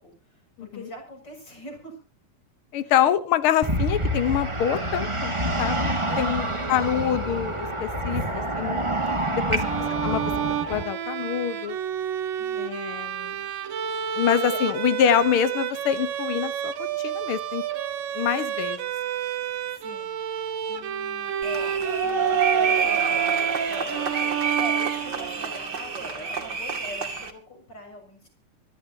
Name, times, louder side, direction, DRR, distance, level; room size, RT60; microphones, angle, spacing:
voice 1, 0.0-2.0 2.8-3.0 6.1-6.5 8.1-8.5 9.6-10.0 12.4-12.8 13.1-13.2 14.4-14.9 19.7-20.1 20.5-28.3, equal, 30° left, 3 dB, 7.4 m, -42 dB
voice 2, 2.7-5.9 6.2-8.2 8.6-8.8 9.3-10.2 10.7-11.8 12.6-13.3 14.1-16.7 17.0-17.6 18.1-18.8, left 9 dB, 75° left, 12 dB, 1.2 m, -25 dB
sound 1, 3.6-10.8, right 1 dB, 15° right, 1.2 m, -27 dB
Bowed string instrument, 9.6-25.5, right 9 dB, 75° right, 2.9 m, -30 dB
sound 2, 21.4-27.3, right 6 dB, 35° right, 2.5 m, -26 dB
24.5 x 13.0 x 2.9 m, 0.35 s
omnidirectional pair, 4.0 m